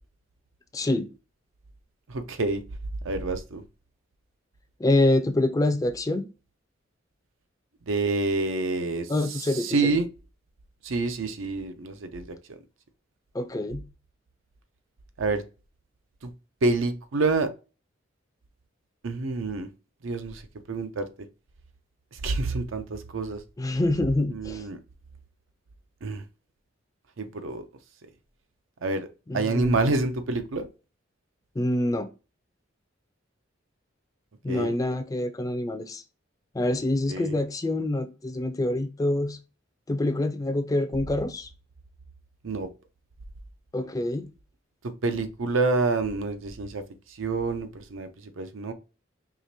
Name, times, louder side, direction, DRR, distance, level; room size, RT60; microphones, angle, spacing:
voice 1, 0.7-1.1 4.8-6.3 9.1-10.0 13.3-13.8 23.6-24.7 29.3-29.7 31.6-32.1 34.4-36.0 36.5-39.4 39.9-41.5 43.7-44.3, left 1 dB, 20° left, 0.4 m, -26 dB
voice 2, 2.1-2.6 3.0-3.6 7.9-10.1 10.8-12.6 15.2-15.4 16.2-16.3 16.6-17.5 19.0-19.7 20.0-20.4 20.7-21.1 22.1-23.4 24.3-24.8 26.0-26.2 27.2-27.6 28.8-29.1 29.3-30.7 34.5-34.7 37.1-37.4 42.4-42.7 44.8-46.8 47.1-48.1 48.4-48.7, right 3 dB, 80° right, 0.6 m, -27 dB
4.9 x 2.9 x 2.7 m
head